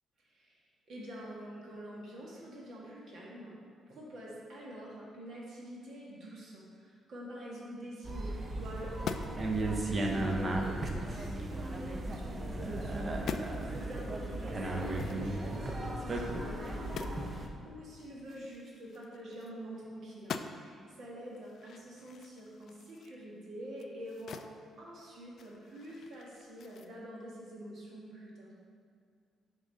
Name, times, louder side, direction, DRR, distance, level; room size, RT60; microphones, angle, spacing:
voice 1, 0.2-3.5 3.9-10.7 11.1-13.1 13.3-24.4 24.8-28.5, equal, 55° right, -4 dB, 1.4 m, -47 dB
sound 1, 8.0-17.5, right 1 dB, 30° right, 0.7 m, -35 dB
sound 2, 8.9-9.5 9.9-10.1 10.5-12.2 12.7-12.9 13.1-13.5 14.7-17.3 17.6-17.7 18.0-19.8 20.1-20.8 21.3-24.6 24.9-26.9, left 6 dB, 60° left, 0.3 m, -45 dB
6.6 x 3.7 x 5.4 m, 2.3 s
cardioid pair, 120°, 0 cm